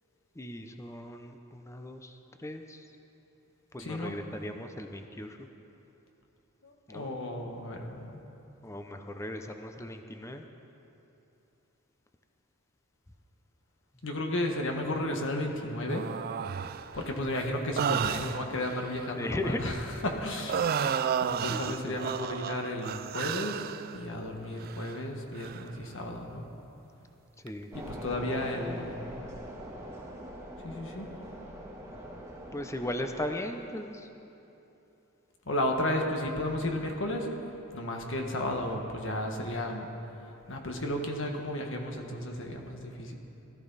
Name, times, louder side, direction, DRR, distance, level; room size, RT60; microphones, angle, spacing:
voice 1, 0.4-2.9 3.7-5.5 6.9-7.1 8.6-10.4 19.2-19.6 20.8-21.1 21.5-22.0 27.4-27.7 32.5-34.1, left 1 dB, 15° left, 6 dB, 0.7 m, -37 dB
voice 2, 3.8-4.1 6.6-8.2 14.0-16.0 16.9-19.8 20.0-20.7 21.2-23.6 23.9-26.4 27.7-29.1 30.6-31.1 35.5-37.3 37.7-39.9 40.5-43.1, left 1 dB, 65° left, 2 dB, 1.6 m, -33 dB
sound 1, 15.9-17.0 17.8-19.0 20.5-24.0 24.6-25.0 25.4-25.7 27.5-27.6, right 7 dB, 45° right, 0.3 m, -32 dB
sound 2, 27.7-33.3, equal, 15° right, 1.5 m, -43 dB
19.0 x 13.5 x 4.1 m, 3.0 s
head